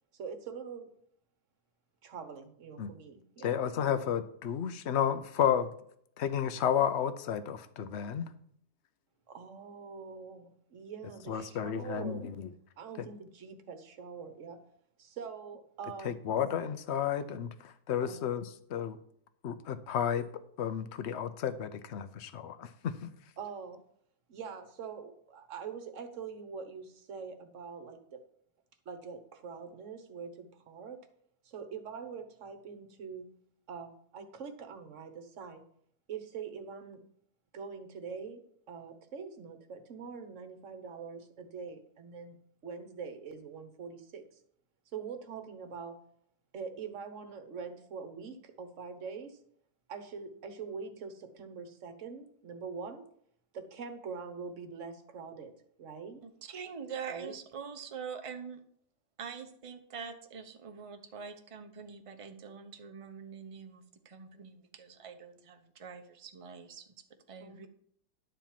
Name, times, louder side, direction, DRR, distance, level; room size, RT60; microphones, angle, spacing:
voice 1, 0.1-0.9 2.0-3.5 9.3-12.3 12.8-14.6 15.0-16.2 18.0-18.2 23.4-23.8 24.3-28.2 28.8-31.0 31.4-33.3 33.7-35.6 36.1-37.0 37.5-42.4 42.6-44.4 44.9-46.0 46.5-49.4 49.9-53.0 53.5-55.5 55.8-56.2 57.1-57.3 67.4-67.6, right 5 dB, 50° right, 8 dB, 1.4 m, -44 dB
voice 2, 3.4-5.7 6.2-8.3 11.3-12.5 16.0-19.0 19.4-20.2 20.6-23.1, left 8 dB, 55° left, 12 dB, 0.8 m, -32 dB
voice 3, 56.2-58.6 59.2-66.8 67.3-67.7, right 6 dB, 30° right, 6 dB, 0.6 m, -44 dB
11.5 x 4.4 x 7.4 m, 0.67 s
omnidirectional pair, 1.8 m